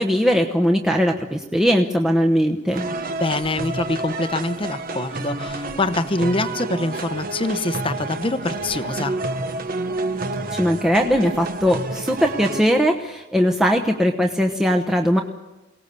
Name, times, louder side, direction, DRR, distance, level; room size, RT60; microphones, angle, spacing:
voice 1, 0.0-2.9 10.5-15.2, equal, 5° right, 1 dB, 1.0 m, -20 dB
sound 1, 2.7-12.6, right 2 dB, 50° right, 1.2 m, -29 dB
voice 2, 3.2-9.2, left 2 dB, 25° left, 11 dB, 0.9 m, -25 dB
23.0 x 18.0 x 7.0 m, 1.1 s
head